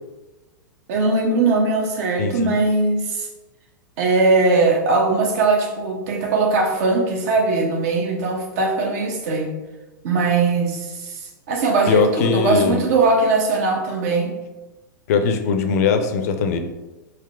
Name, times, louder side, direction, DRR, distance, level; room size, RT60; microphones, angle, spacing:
voice 1, 0.9-3.3 4.0-9.5 10.0-11.2 11.5-14.3, right 3 dB, 50° right, 1 dB, 0.8 m, -20 dB
voice 2, 2.2-2.5 11.9-12.8 15.1-16.6, left 6 dB, 50° left, 7 dB, 0.5 m, -20 dB
3.7 x 2.7 x 3.3 m, 1.1 s
figure-of-eight pair, 100°, 11 cm